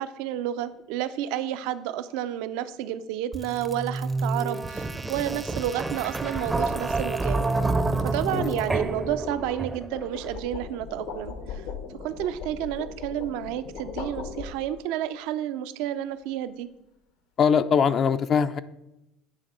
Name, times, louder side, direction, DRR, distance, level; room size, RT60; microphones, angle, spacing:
voice 1, 0.0-7.5 8.0-11.6 12.0-16.7, right 11 dB, 80° right, 12 dB, 0.5 m, -30 dB
sound 1, 0.6-0.9 6.0-14.9, left 5 dB, 80° left, 1.1 m, -40 dB
sound 2, 3.3-10.1, right 3 dB, 15° right, 0.5 m, -28 dB
voice 2, 8.3-8.6 17.4-18.6, left 6 dB, 45° left, 12 dB, 0.4 m, -22 dB
9.0 x 3.6 x 5.4 m, 0.90 s
supercardioid pair, 110°, 0 cm